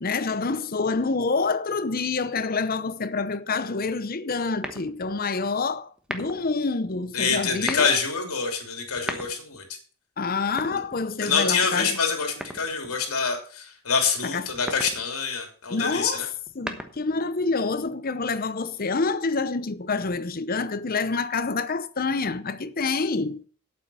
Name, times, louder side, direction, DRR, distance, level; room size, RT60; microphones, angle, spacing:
voice 1, 0.0-7.9 10.2-12.0 14.2-14.5 15.7-16.3 16.6-23.4, left 4 dB, 45° left, 0.8 m, -27 dB
sound 1, 4.6-5.2 6.0-6.5 7.5-8.0 8.8-9.6 10.4-11.4 12.4-13.0 14.5-15.0 16.3-17.2, equal, 5° right, 1.1 m, -36 dB
voice 2, 7.1-9.7 11.2-16.2, left 5 dB, 85° left, 3.0 m, -26 dB
8.7 x 8.2 x 6.9 m
head